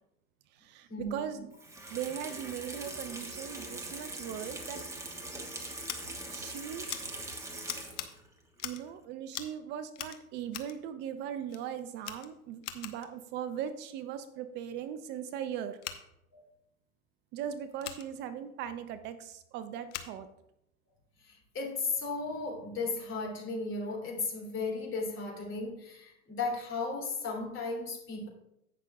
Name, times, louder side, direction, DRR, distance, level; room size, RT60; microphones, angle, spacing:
voice 1, 0.5-1.5 1.9-4.8 6.3-6.8 7.1-7.4 8.6-15.8 17.3-20.3, right 9 dB, 25° right, 11 dB, 0.4 m, -39 dB
Water tap faucet / Sink (filling or washing), 1.5-8.3 8.6-8.7, right 2 dB, 5° right, 1.2 m, -42 dB
Scissors, 5.8-6.0 6.9-7.0 7.6-8.1 8.6-8.9 9.3-9.6 9.9-10.8 11.5-11.6 12.0-13.1 15.8-16.0 17.8-18.0 19.9-20.1, left 12 dB, 55° left, 1.0 m, -41 dB
voice 2, 21.2-28.3, left 3 dB, 30° left, 0 dB, 3.0 m, -35 dB
17.0 x 6.0 x 2.3 m, 0.83 s
hypercardioid pair, 105°, 42 cm